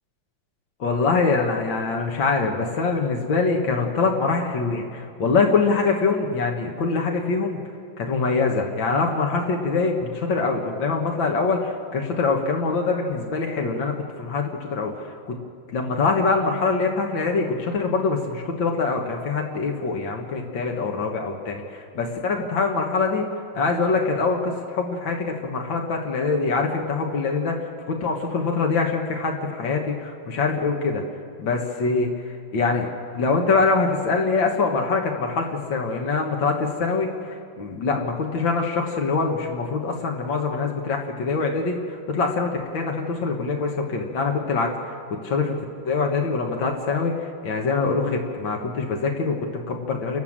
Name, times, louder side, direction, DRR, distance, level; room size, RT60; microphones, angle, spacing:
voice 1, 0.8-7.6 8.0-14.9 15.3-15.4 15.7-23.3 23.5-31.0 31.4-45.6 45.8-50.2, left 4 dB, 80° left, 1 dB, 2.2 m, -24 dB
29.0 x 12.5 x 7.4 m, 2.3 s
omnidirectional pair, 2.1 m